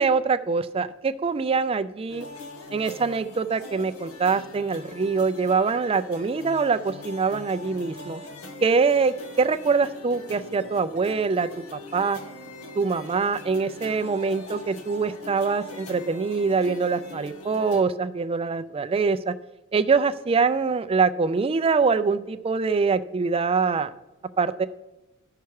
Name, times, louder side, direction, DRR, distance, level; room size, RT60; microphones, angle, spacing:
voice 1, 0.0-2.3 2.7-8.2 8.6-12.2 12.8-19.3 19.7-23.9 24.4-24.7, right 4 dB, 25° right, 13 dB, 0.4 m, -24 dB
sound 1, 2.1-17.8, left 2 dB, 90° left, 1.2 m, -41 dB
12.5 x 5.7 x 4.7 m, 1.0 s
head